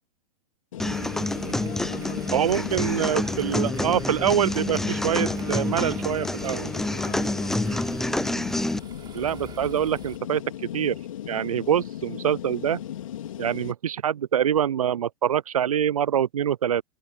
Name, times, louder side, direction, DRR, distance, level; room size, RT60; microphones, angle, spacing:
sound 1, 0.7-13.7, left 11 dB, 65° left, 3.9 m, -37 dB
sound 2, 0.8-8.8, left 1 dB, ahead, 0.3 m, -28 dB
sound 3, 0.8-10.2, right 8 dB, 25° right, 5.4 m, -45 dB
voice 1, 1.3-2.6 3.1-3.2 3.5-3.7 4.8-5.7 7.0-8.1, left 14 dB, 35° left, 3.7 m, -48 dB
voice 2, 2.3-6.7 9.1-10.4 10.7-11.0 11.3-12.8 13.4-16.8, right 9 dB, 75° right, 0.5 m, -25 dB
figure-of-eight pair, 100°, 18 cm